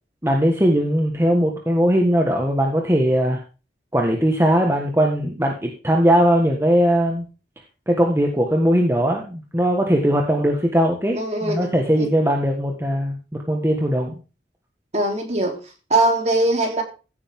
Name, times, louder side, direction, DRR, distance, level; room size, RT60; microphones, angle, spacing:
voice 1, 0.2-3.4 3.9-7.3 7.9-13.2 13.5-14.2, equal, 15° right, 1.5 m, -19 dB
voice 2, 11.1-12.1 14.9-16.8, right 2 dB, 40° right, 3.3 m, -22 dB
15.5 x 9.0 x 3.7 m
head